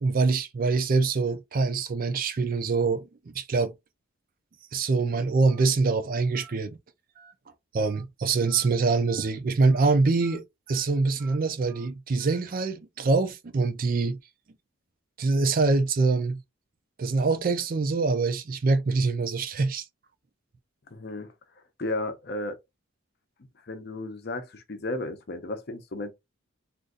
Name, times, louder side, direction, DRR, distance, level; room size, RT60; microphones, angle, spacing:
voice 1, 0.0-3.7 4.7-6.8 7.7-14.2 15.2-16.4 17.0-19.9, right 3 dB, 40° right, 0.4 m, -24 dB
Telephone, 5.5-5.6 6.3-6.5 7.1-7.3 7.8-8.0 8.5-8.7 9.1-9.3 9.7-9.9 10.2-10.4 10.7-10.8 11.2-11.4 11.7-11.9 12.2-12.4, right 7 dB, 20° right, 0.9 m, -51 dB
voice 2, 20.9-21.3 21.8-22.6 23.6-26.1, left 2 dB, 50° left, 0.6 m, -33 dB
3.8 x 2.6 x 2.4 m
head